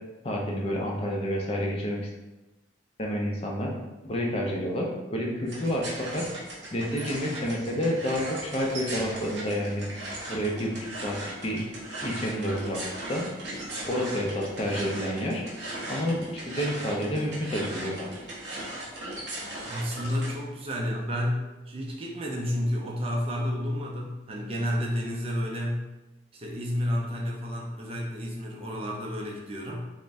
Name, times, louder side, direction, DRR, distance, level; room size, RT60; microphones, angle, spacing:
voice 1, 0.2-2.0 3.0-3.7 4.1-5.8 6.1-6.2 6.7-9.9 10.3-11.2 11.4-11.6 12.0-12.8 13.1-13.2 13.9-15.4 15.9-18.1, equal, 30° left, -2 dB, 0.4 m, -29 dB
sound 1, 5.5-20.4, right 1 dB, 65° right, 0.8 m, -38 dB
voice 2, 19.7-25.9 26.3-29.9, equal, 30° right, -1 dB, 0.4 m, -31 dB
2.5 x 2.1 x 3.3 m, 1.1 s
head